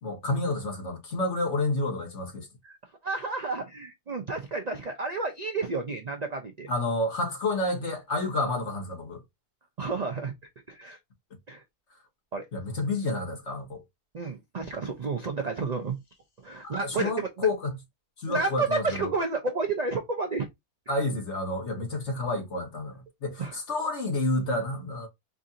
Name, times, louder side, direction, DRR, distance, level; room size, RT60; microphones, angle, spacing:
voice 1, 0.0-2.5 6.7-9.2 12.5-13.8 16.6-17.8 18.2-19.1 20.9-25.1, left 2 dB, 50° left, 1.5 m, -29 dB
voice 2, 3.0-6.7 9.8-10.3 10.7-11.0 11.5-11.6 12.3-12.5 14.1-16.0 16.4-17.5 18.3-20.5 23.4-23.5, right 3 dB, 70° right, 0.4 m, -31 dB
4.7 x 2.5 x 2.7 m
omnidirectional pair, 1.6 m